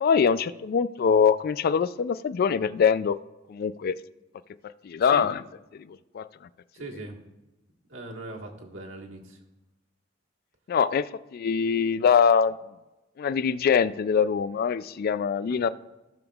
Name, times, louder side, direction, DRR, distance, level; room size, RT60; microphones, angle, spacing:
voice 1, 0.0-3.2 3.5-4.0 4.8-5.4 5.7-6.3 10.7-12.6 13.2-15.7, left 6 dB, 50° left, 16 dB, 0.3 m, -23 dB
voice 2, 6.7-7.2 7.9-9.4 15.5-15.6, right 2 dB, 75° right, 0 dB, 1.6 m, -40 dB
15.0 x 7.0 x 2.4 m, 1.0 s
head